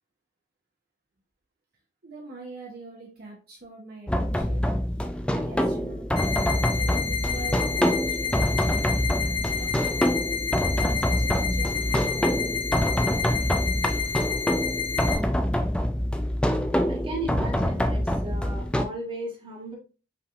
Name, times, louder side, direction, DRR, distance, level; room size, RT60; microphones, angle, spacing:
voice 1, 2.0-4.7 5.2-9.7 10.8-13.6, right 3 dB, 50° right, -2 dB, 0.9 m, -44 dB
sound 1, 4.1-18.8, equal, 5° left, 0.3 m, -25 dB
sound 2, 6.2-15.2, left 7 dB, 55° left, 2.2 m, -30 dB
voice 2, 16.9-19.7, right 1 dB, 25° right, -2 dB, 1.4 m, -35 dB
5.8 x 3.3 x 2.5 m, 0.33 s
head